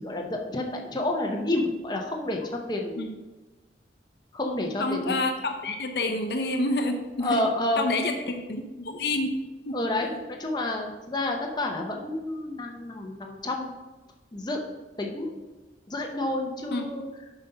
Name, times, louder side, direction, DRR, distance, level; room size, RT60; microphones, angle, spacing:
voice 1, 0.0-3.1 4.3-5.2 7.2-7.9 9.7-13.8 14.3-14.6 15.0-15.4 15.9-17.1, left 1 dB, 25° left, 1 dB, 0.8 m, -29 dB
voice 2, 4.8-7.4 7.8-9.4 9.7-10.2 16.7-16.8, left 2 dB, 65° left, 5 dB, 0.6 m, -28 dB
7.6 x 4.1 x 5.4 m, 1.2 s
head